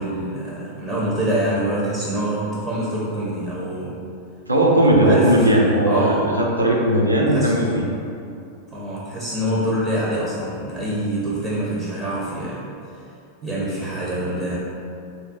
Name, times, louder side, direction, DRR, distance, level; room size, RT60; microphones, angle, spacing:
voice 1, 0.0-4.0 4.8-5.5 5.8-6.3 7.3-7.5 8.7-12.7 13.4-14.6, right 1 dB, 25° right, -7 dB, 0.5 m, -25 dB
voice 2, 4.5-7.8, right 1 dB, 80° right, -2 dB, 0.4 m, -17 dB
3.6 x 2.2 x 2.5 m, 2.6 s
figure-of-eight pair, 90°, 0 cm